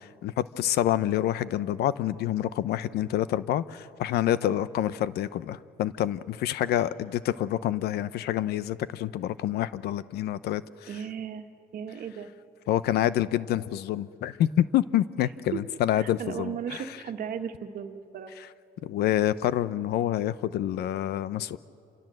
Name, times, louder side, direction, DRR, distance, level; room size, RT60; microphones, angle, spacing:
voice 1, 0.2-10.9 12.7-16.8 18.8-21.6, left 12 dB, 75° left, 16 dB, 0.8 m, -27 dB
voice 2, 10.9-11.5 11.7-12.3 15.5-15.6 15.9-18.3, right 8 dB, 55° right, 7 dB, 1.6 m, -36 dB
28.0 x 25.0 x 7.7 m, 2.4 s
cardioid pair, 110°, 17 cm